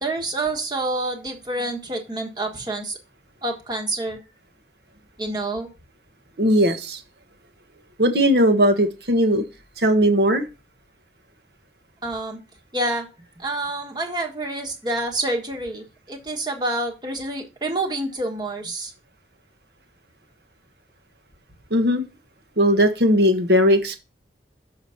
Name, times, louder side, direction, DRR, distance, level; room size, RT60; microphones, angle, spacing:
voice 1, 0.0-3.0 3.4-4.2 5.2-5.7 12.0-12.4 12.7-13.1 13.4-18.9, right 2 dB, 25° right, 2 dB, 1.4 m, -28 dB
voice 2, 6.4-7.0 8.0-9.4 9.8-10.4 21.7-22.0 22.6-24.0, equal, 65° right, 7 dB, 1.3 m, -18 dB
6.9 x 5.0 x 5.7 m, 0.31 s
head